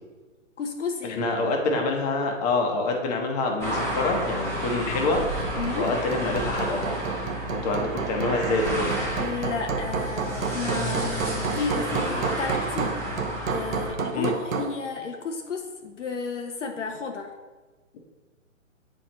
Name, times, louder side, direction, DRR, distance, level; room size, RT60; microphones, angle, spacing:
voice 1, 0.6-1.2 5.6-5.9 9.2-17.3, left 4 dB, 60° left, 3 dB, 0.8 m, -32 dB
voice 2, 1.1-5.2 5.8-6.8 7.5-8.9 14.1-14.3, left 3 dB, 30° left, 2 dB, 1.1 m, -26 dB
sound 1, 3.6-13.9, equal, 5° left, 1.1 m, -31 dB
Hammer, 5.2-14.8, right 6 dB, 80° right, 0.8 m, -31 dB
8.9 x 4.5 x 3.0 m, 1.3 s
hypercardioid pair, 140°, 40 cm